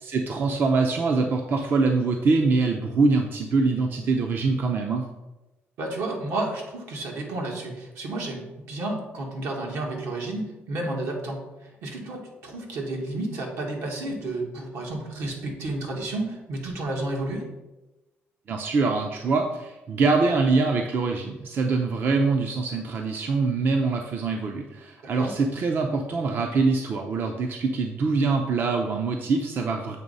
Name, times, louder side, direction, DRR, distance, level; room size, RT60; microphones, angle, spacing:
voice 1, 0.0-5.1 18.5-30.0, right 4 dB, 50° right, 3 dB, 0.6 m, -24 dB
voice 2, 5.8-17.5 25.0-25.3, right 2 dB, 80° right, 0 dB, 1.6 m, -31 dB
7.5 x 3.2 x 5.3 m, 1.0 s
cardioid pair, 115°, 5 cm